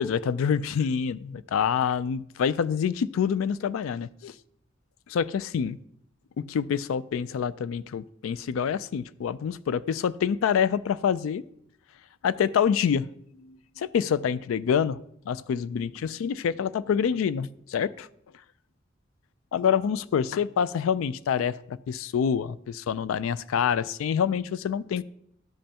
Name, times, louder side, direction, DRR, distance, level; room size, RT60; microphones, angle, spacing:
voice 1, 0.0-4.3 5.1-5.8 6.4-11.4 12.2-13.1 13.4-15.0 15.3-18.1 19.5-25.0, left 7 dB, 85° left, 18 dB, 0.3 m, -26 dB
12.0 x 5.3 x 2.9 m, 0.71 s
head